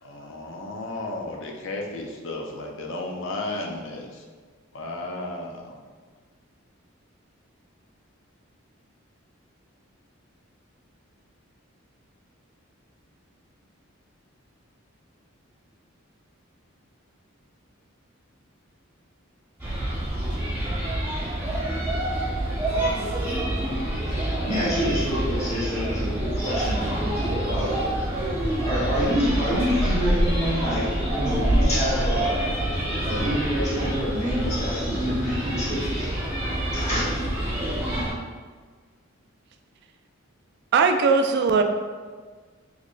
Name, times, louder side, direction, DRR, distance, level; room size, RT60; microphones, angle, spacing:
voice 1, 0.0-4.2 4.7-5.8, left 2 dB, 60° left, 0 dB, 0.5 m, -34 dB
sound 1, 19.6-38.1, right 1 dB, 10° right, 1.0 m, -26 dB
voice 2, 24.4-27.8 28.6-32.4 33.0-36.2 36.7-37.0, equal, 30° left, -8 dB, 1.3 m, -27 dB
voice 3, 40.7-41.6, right 4 dB, 55° right, 6 dB, 0.3 m, -19 dB
4.0 x 3.0 x 2.5 m, 1.5 s
head